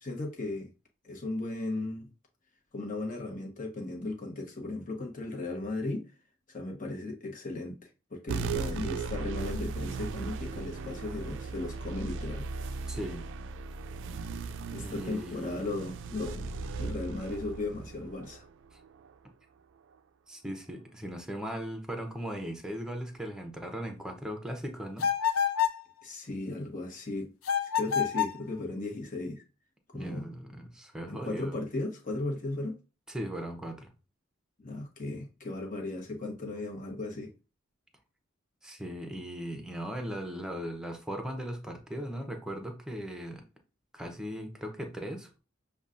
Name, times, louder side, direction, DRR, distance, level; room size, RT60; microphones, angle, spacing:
voice 1, 0.0-0.7 1.0-2.1 2.7-6.1 6.5-12.5 14.7-16.5 16.8-18.4 26.0-27.3 27.6-29.4 29.9-30.3 31.1-32.8 34.6-37.3, left 2 dB, 40° left, 1.1 m, -36 dB
sound 1, 8.3-19.1, right 4 dB, 60° right, 0.3 m, -37 dB
voice 2, 12.9-13.3 14.8-15.6 20.3-25.1 29.9-31.6 33.1-33.9 38.6-43.4 43.9-45.4, equal, 5° right, 0.8 m, -38 dB
sound 2, 25.0-25.8 27.4-28.4, left 8 dB, 80° left, 0.6 m, -27 dB
7.0 x 2.3 x 2.5 m
head